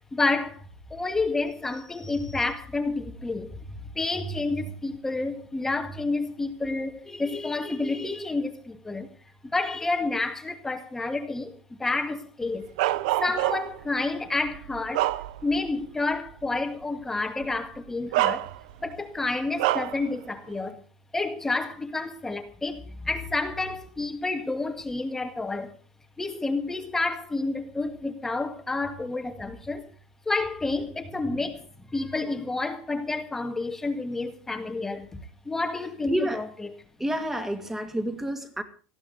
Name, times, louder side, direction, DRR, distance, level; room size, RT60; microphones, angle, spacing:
voice 1, 0.1-0.7 0.9-9.1 9.4-11.5 11.8-12.7 13.2-15.1 15.4-18.5 18.8-20.8 21.1-25.7 26.2-29.9 30.3-35.2 35.5-36.7, left 3 dB, 10° left, 1.9 m, -29 dB
Bark, 12.8-13.9 14.4-15.7 16.1-16.3 17.4-17.6 18.1-18.9 19.6-20.0, right 15 dB, 70° right, 0.8 m, -26 dB
voice 2, 36.1-36.5 37.0-38.6, right 1 dB, 10° right, 2.5 m, -29 dB
19.5 x 15.0 x 3.9 m
supercardioid pair, 145°, 4 cm